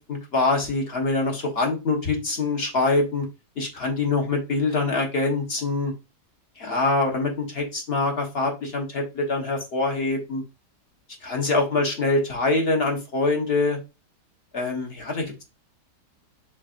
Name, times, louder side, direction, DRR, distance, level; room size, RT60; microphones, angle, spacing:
voice 1, 0.0-3.3 3.6-5.9 6.6-10.4 11.2-13.8 14.5-15.4, left 3 dB, 40° left, 1 dB, 1.2 m, -24 dB
4.9 x 4.1 x 2.4 m, 0.27 s
omnidirectional pair, 1.8 m